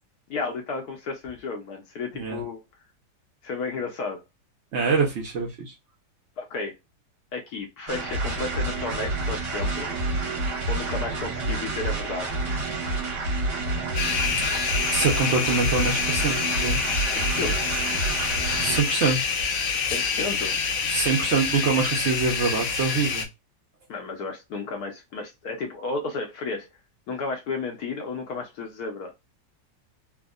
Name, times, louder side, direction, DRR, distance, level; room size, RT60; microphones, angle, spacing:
voice 1, 0.3-2.6 3.4-4.2 6.4-6.7 7.3-9.9 10.7-12.3 17.1-17.8 19.8-20.6 23.9-26.7 27.1-29.1, left 3 dB, 65° left, 1.0 m, -33 dB
voice 2, 4.7-5.7 14.9-16.8 18.6-19.3 20.9-23.3, right 4 dB, 85° right, 0.6 m, -25 dB
sound 1, 7.9-18.8, right 2 dB, 60° right, 1.5 m, -29 dB
sound 2, 13.9-23.2, left 5 dB, 85° left, 0.6 m, -27 dB
3.4 x 2.0 x 2.2 m
omnidirectional pair, 2.1 m